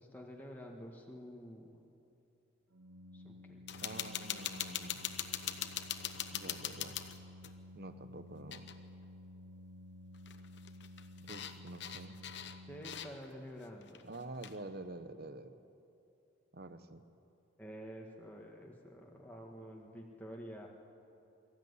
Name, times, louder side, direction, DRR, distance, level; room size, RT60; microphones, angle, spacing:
voice 1, 0.0-1.8 3.1-3.6 12.7-14.1 17.6-20.7, equal, 10° left, 0 dB, 1.7 m, -49 dB
Organ, 2.7-13.5, left 1 dB, 80° right, 1.0 m, -53 dB
sound 1, 3.7-7.6 8.5-8.8 9.0-9.1 10.1-13.4 13.8-14.6, left 10 dB, 55° left, 1.1 m, -41 dB
voice 2, 3.8-5.0 6.3-7.0 7.7-8.7 11.2-12.2 14.0-15.6 16.5-17.0, right 2 dB, 50° right, 11 dB, 1.0 m, -47 dB
22.5 x 14.0 x 9.7 m, 2.8 s
head